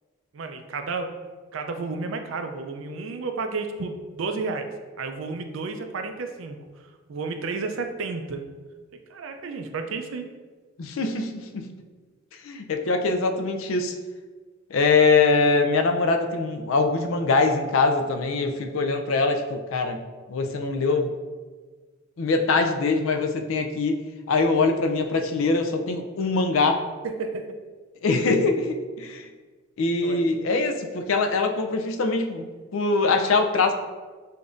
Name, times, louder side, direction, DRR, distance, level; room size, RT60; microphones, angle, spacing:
voice 1, 0.3-1.1 1.5-4.7 5.0-6.6 7.1-8.4 9.1-10.3 27.0-27.6 30.0-30.3, right 4 dB, 65° right, 6 dB, 0.4 m, -31 dB
voice 2, 10.8-11.7 12.4-13.9 14.7-20.0 20.3-21.1 22.2-24.0 24.3-26.8 28.0-29.3 29.8-32.5 32.7-33.7, left 3 dB, 65° left, 5 dB, 0.4 m, -23 dB
6.6 x 2.6 x 2.4 m, 1.4 s
head